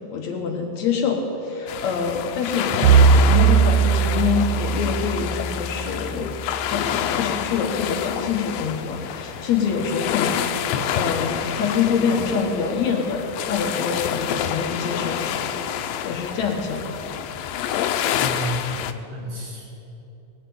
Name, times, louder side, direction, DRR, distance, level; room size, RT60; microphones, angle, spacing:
voice 1, 0.1-6.3 6.7-6.8 7.1-15.2 16.1-17.0 17.3-17.6, left 6 dB, 65° left, 2 dB, 2.2 m, -25 dB
sound 1, 1.7-18.9, left 9 dB, 85° left, 2.3 m, -28 dB
Bowed string instrument, 2.8-7.0, right 6 dB, 90° right, 1.5 m, -19 dB
voice 2, 18.1-19.6, equal, 75° right, -6 dB, 5.6 m, -31 dB
18.0 x 6.5 x 9.3 m, 3.0 s
omnidirectional pair, 3.9 m